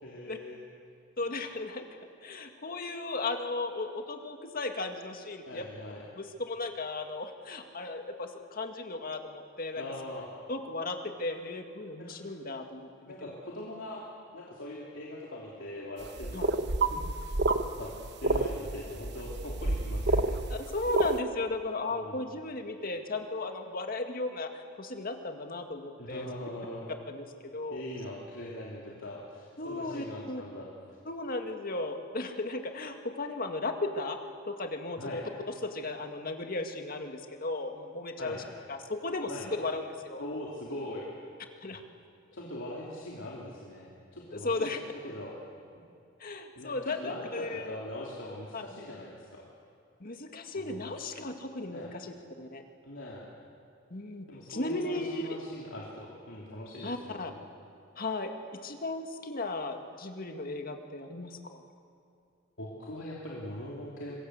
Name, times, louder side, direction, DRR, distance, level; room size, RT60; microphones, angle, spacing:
voice 1, 0.0-0.6 5.4-6.1 9.8-10.3 12.0-12.1 13.1-14.0 14.3-16.4 16.9-17.0 17.8-17.9 18.2-20.3 21.9-22.3 26.0-26.9 27.7-30.7 35.0-35.2 38.2-38.4 39.3-39.5 40.2-41.1 42.3-44.7 45.0-45.3 46.5-49.4 50.5-50.9 51.7-51.9 52.8-53.2 54.3-57.3 62.6-64.2, left 1 dB, 65° left, -4 dB, 3.3 m, -41 dB
voice 2, 1.2-1.9 2.2-5.6 6.2-9.8 10.5-13.1 16.3-16.5 20.5-26.3 27.1-27.8 29.6-30.4 31.1-34.2 34.4-35.2 35.6-38.4 38.7-39.3 39.6-40.2 41.6-41.8 44.3-44.8 46.2-47.8 48.5-48.6 50.0-52.6 53.9-55.4 56.8-57.3 58.0-58.3 58.6-61.6, left 2 dB, 45° left, 5 dB, 2.0 m, -36 dB
sound 1, 16.0-21.2, right 2 dB, 55° right, 1.2 m, -29 dB
26.0 x 20.5 x 8.2 m, 2.5 s
head